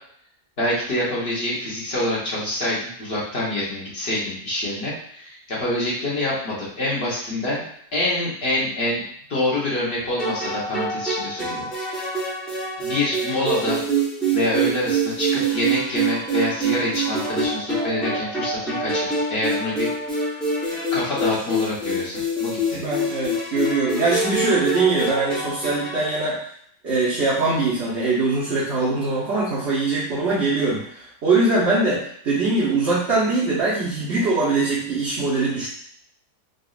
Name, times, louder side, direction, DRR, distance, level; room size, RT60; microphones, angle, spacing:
voice 1, 0.6-7.6 7.9-9.0 9.3-12.2 12.8-13.8 14.3-19.9 20.1-20.3 20.9-22.8, left 1 dB, 45° left, -7 dB, 1.3 m, -26 dB
sound 1, 10.2-26.1, right 2 dB, ahead, 0.7 m, -26 dB
voice 2, 22.7-26.4 26.8-35.7, right 3 dB, 50° right, -9 dB, 1.1 m, -22 dB
4.0 x 2.5 x 2.4 m, 0.66 s
omnidirectional pair, 1.6 m